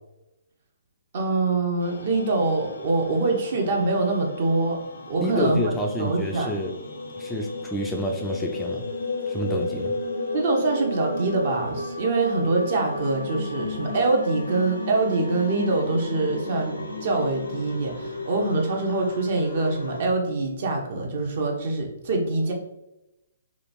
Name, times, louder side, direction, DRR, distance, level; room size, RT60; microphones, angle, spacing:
voice 1, 1.1-4.8 5.1-5.7 6.0-6.5 10.3-22.5, right 3 dB, 45° right, 1 dB, 0.6 m, -24 dB
sound 1, 1.8-20.1, left 2 dB, 70° left, 0.5 m, -34 dB
voice 2, 5.2-6.7 7.2-8.8 9.3-9.9, left 1 dB, 5° left, 0 dB, 0.3 m, -28 dB
3.0 x 2.4 x 2.5 m, 0.92 s
figure-of-eight pair, 130°, 0 cm